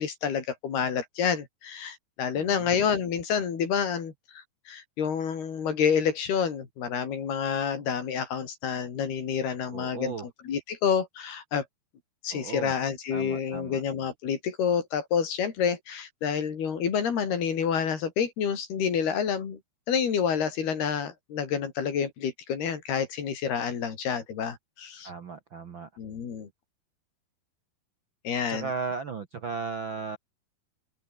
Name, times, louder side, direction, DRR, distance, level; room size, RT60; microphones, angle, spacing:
voice 1, 0.0-11.7 12.2-19.6 19.9-25.1 26.0-26.5 28.2-28.7, left 7 dB, 85° left, 5.8 m, -28 dB
voice 2, 2.3-2.8 9.7-10.3 12.3-12.7 13.1-13.8 25.0-25.9 28.5-30.2, right 4 dB, 55° right, 1.4 m, -36 dB
open air
omnidirectional pair, 4.4 m